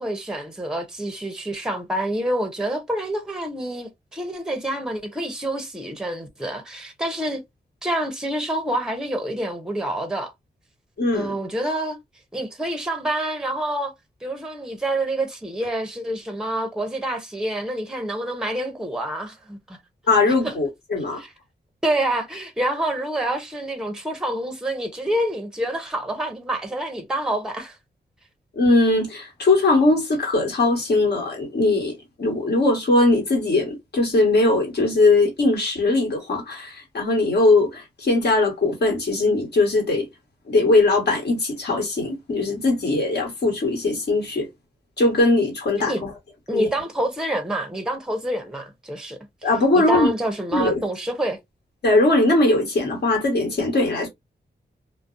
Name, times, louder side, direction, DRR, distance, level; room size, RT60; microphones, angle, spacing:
voice 1, 0.0-7.4 7.8-10.3 11.1-12.0 12.3-13.9 14.2-19.8 20.4-20.5 21.2-21.3 21.8-27.8 45.9-46.0 46.5-49.5 49.7-51.4, right 1 dB, 5° right, 0.6 m, -27 dB
voice 2, 11.0-11.3 20.1-21.2 28.6-31.9 32.2-40.1 40.5-44.5 45.0-46.1 46.5-46.7 49.4-50.1 50.5-50.8 51.8-54.1, left 2 dB, 70° left, 1.3 m, -20 dB
2.5 x 2.0 x 2.4 m
wide cardioid pair, 95°, 17 cm